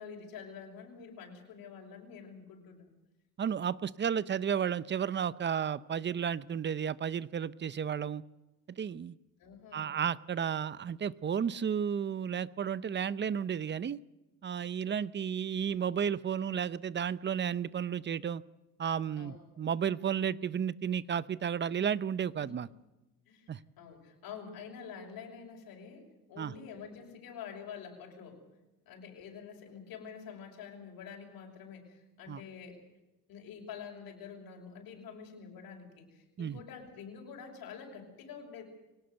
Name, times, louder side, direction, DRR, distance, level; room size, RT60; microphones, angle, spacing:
voice 1, 0.0-2.9 9.4-10.0 15.2-15.3 19.2-19.7 22.4-22.5 23.3-28.4 28.9-32.8 33.3-38.6, left 6 dB, 85° left, 1 dB, 6.1 m, -47 dB
voice 2, 3.4-8.2 8.8-9.2 9.7-14.0 14.4-18.4 18.8-22.7 23.5-23.6 26.4-26.5 32.3-32.4 36.4-36.6, right 8 dB, 30° right, 18 dB, 0.7 m, -33 dB
23.5 x 18.5 x 8.0 m, 1.0 s
cardioid pair, 125°, 35 cm